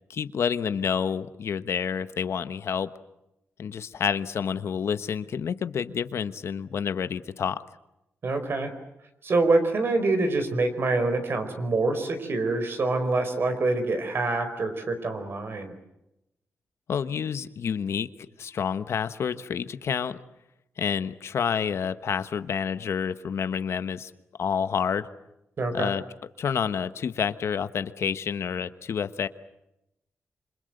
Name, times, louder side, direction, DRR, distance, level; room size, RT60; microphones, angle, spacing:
voice 1, 0.1-2.9 3.6-7.6 16.9-18.1 18.4-20.2 20.8-24.1 24.4-25.1 25.7-26.0 26.4-29.3, left 7 dB, 65° left, 12 dB, 1.1 m, -29 dB
voice 2, 8.2-8.7 9.2-15.7 25.6-25.9, right 3 dB, 50° right, 8 dB, 4.7 m, -25 dB
27.0 x 26.0 x 7.9 m, 0.88 s
wide cardioid pair, 135°, 5 cm